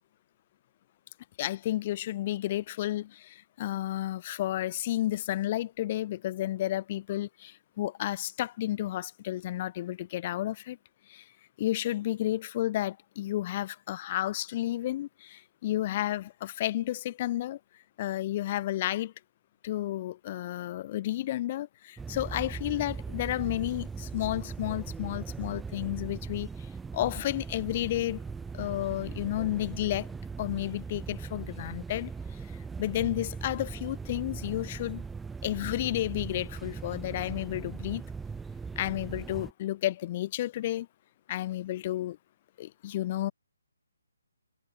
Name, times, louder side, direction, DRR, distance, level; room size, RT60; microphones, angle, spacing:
voice 1, 1.4-10.8 11.1-11.2 11.6-17.6 18.0-19.1 19.6-28.2 28.5-30.1 30.4-32.4 32.8-35.0 35.4-38.0 38.8-40.9 41.3-42.2 42.6-43.3, left 14 dB, 30° left, 0.8 m, -32 dB
sound 1, 22.0-39.5, right 5 dB, 5° right, 1.1 m, -39 dB
figure-of-eight pair, 140°, 0 cm